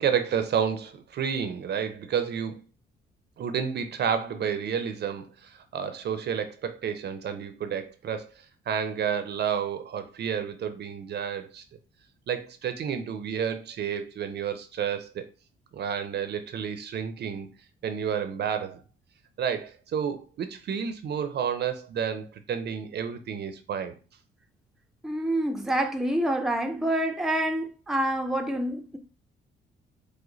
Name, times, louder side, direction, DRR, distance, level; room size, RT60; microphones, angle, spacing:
voice 1, 0.0-2.6 3.4-8.3 8.7-11.6 12.3-15.2 15.7-17.5 17.8-18.8 19.4-23.9, right 7 dB, 55° right, 0.6 m, -30 dB
voice 2, 25.0-29.0, right 1 dB, ahead, 0.6 m, -27 dB
4.9 x 2.1 x 3.9 m
cardioid pair, 90°, 20 cm